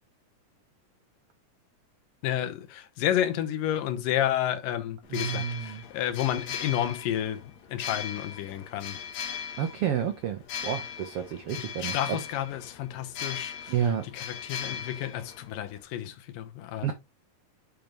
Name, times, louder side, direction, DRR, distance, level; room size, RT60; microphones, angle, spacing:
voice 1, 2.2-7.4 7.7-9.0 11.8-13.7 14.1-16.9, left 11 dB, 80° left, 2.6 m, -31 dB
sound 1, 5.0-15.8, left 8 dB, 60° left, 2.4 m, -39 dB
voice 2, 5.1-5.8 9.6-12.2 13.7-14.1 16.8-16.9, right 9 dB, 80° right, 1.3 m, -30 dB
7.6 x 5.2 x 3.2 m
omnidirectional pair, 3.8 m